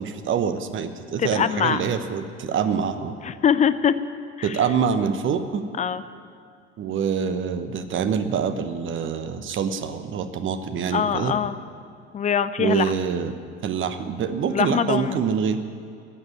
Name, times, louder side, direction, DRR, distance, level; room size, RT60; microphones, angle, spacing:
voice 1, 0.0-3.1 4.4-5.6 6.8-11.3 12.6-13.3 13.6-15.6, right 7 dB, 35° right, 10 dB, 1.0 m, -25 dB
voice 2, 1.2-1.8 3.2-3.9 4.4-4.6 5.8-6.0 10.9-11.6 12.1-12.9 14.5-15.2, left 8 dB, 20° left, 13 dB, 0.4 m, -23 dB
12.5 x 8.0 x 9.7 m, 2.3 s
figure-of-eight pair, 60°, 35 cm